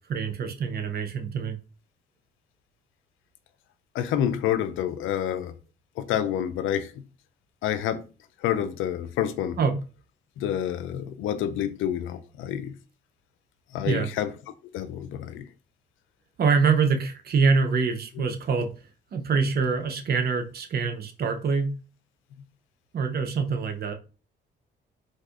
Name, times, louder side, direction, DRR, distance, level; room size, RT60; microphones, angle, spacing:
voice 1, 0.1-1.6 9.6-9.8 13.8-14.1 16.4-18.7 19.1-21.7 22.9-23.9, right 5 dB, 50° right, 0.6 m, -25 dB
voice 2, 3.9-5.5 6.0-6.9 7.6-8.1 8.4-9.6 10.4-12.7 13.7-14.3 14.7-15.5, left 10 dB, 80° left, 0.4 m, -28 dB
4.0 x 2.5 x 2.4 m
cardioid pair, 90°, 20 cm